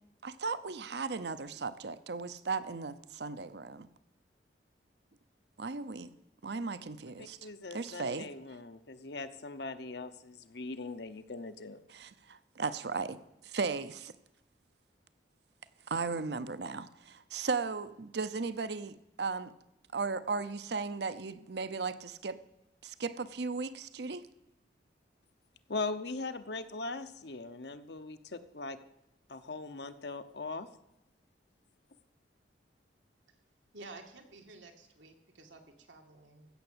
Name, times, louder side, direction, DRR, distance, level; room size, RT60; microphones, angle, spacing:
voice 1, 0.2-3.9 5.6-6.1 6.4-7.4 7.7-8.3 11.9-13.2 13.4-14.1 15.9-19.5 19.9-22.4 22.8-24.3, right 4 dB, 65° right, 14 dB, 0.7 m, -36 dB
voice 2, 7.2-11.8 25.7-28.8 29.3-30.7, left 3 dB, 65° left, 10 dB, 0.9 m, -40 dB
voice 3, 33.7-36.5, right 3 dB, 90° right, 3 dB, 2.1 m, -52 dB
15.5 x 6.8 x 8.1 m, 0.89 s
head